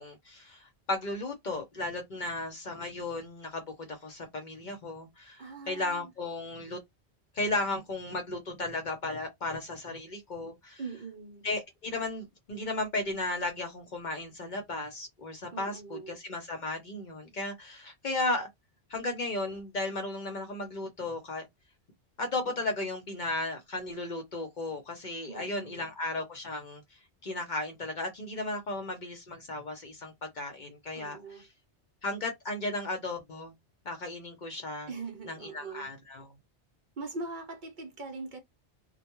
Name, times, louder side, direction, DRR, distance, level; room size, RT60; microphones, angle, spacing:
voice 1, 0.0-6.8 7.3-10.8 11.4-18.5 18.9-21.4 22.2-26.8 27.2-31.5 32.0-33.5 33.8-34.9 35.2-36.3, left 2 dB, 50° left, 0.7 m, -35 dB
voice 2, 5.4-6.0 10.8-11.5 15.5-16.2 25.3-25.9 30.9-31.4 34.9-35.9 37.0-38.4, right 3 dB, 50° right, 0.7 m, -41 dB
2.2 x 2.1 x 2.9 m
omnidirectional pair, 1.2 m